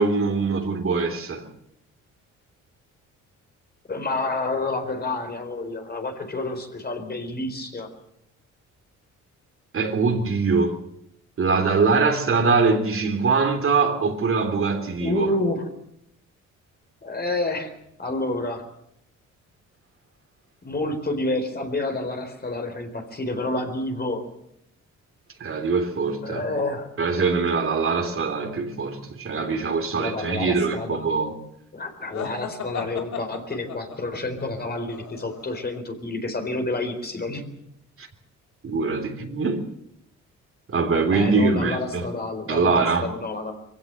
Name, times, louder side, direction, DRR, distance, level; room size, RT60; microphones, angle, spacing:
voice 1, 0.0-1.5 9.7-10.7 11.4-15.3 25.4-26.5 27.0-31.4 38.0-38.1 38.6-39.7 40.7-42.1 42.5-43.1, right 4 dB, 45° right, 3.5 m, -23 dB
voice 2, 3.9-7.9 15.0-15.7 17.0-17.7 18.0-18.7 20.6-24.2 26.2-26.9 30.0-31.0 31.7-37.4 41.1-43.5, left 2 dB, 30° left, 4.2 m, -29 dB
sound 1, 32.1-35.8, left 7 dB, 65° left, 2.9 m, -36 dB
22.5 x 16.5 x 7.8 m
cardioid pair, 90°, 30 cm